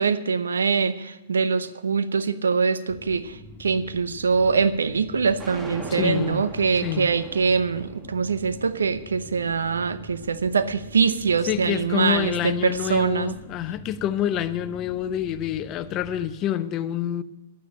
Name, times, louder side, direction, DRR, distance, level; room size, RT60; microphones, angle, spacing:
voice 1, 0.0-13.3, right 5 dB, 80° right, 0.7 m, -23 dB
sound 1, 2.9-16.3, left 1 dB, 15° left, 1.7 m, -45 dB
sound 2, 5.4-11.5, right 1 dB, 10° right, 1.6 m, -42 dB
voice 2, 5.9-6.4 6.8-7.1 11.5-17.2, left 10 dB, 35° left, 0.7 m, -27 dB
10.5 x 9.2 x 7.5 m
hypercardioid pair, 115°, 0 cm